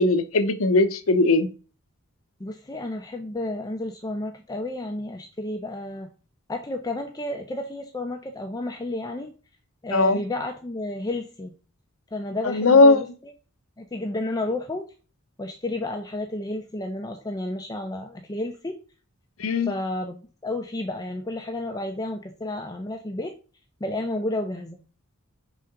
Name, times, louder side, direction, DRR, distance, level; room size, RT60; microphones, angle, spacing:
voice 1, 0.0-1.5 9.9-10.2 12.4-13.1 19.4-19.7, left 3 dB, 65° left, 0.7 m, -18 dB
voice 2, 2.4-6.1 6.5-9.3 9.8-11.5 12.1-13.1 13.8-14.9 15.4-18.8 19.7-23.3 23.8-24.8, left 1 dB, 15° left, 0.6 m, -31 dB
5.1 x 3.7 x 5.7 m
head